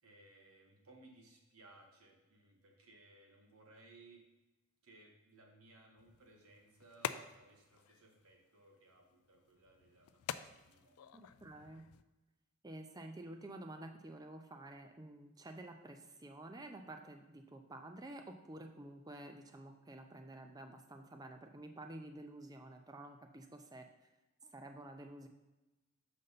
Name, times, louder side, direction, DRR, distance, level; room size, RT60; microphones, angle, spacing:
voice 1, 0.0-4.2 4.8-11.2, right 2 dB, 85° right, 1 dB, 1.3 m, -62 dB
sound 1, 6.0-12.0, left 9 dB, 85° left, 0.3 m, -48 dB
voice 2, 11.1-11.8 12.6-23.8 24.4-25.3, right 1 dB, 15° right, 5 dB, 0.5 m, -50 dB
6.6 x 5.2 x 4.1 m, 1.1 s
head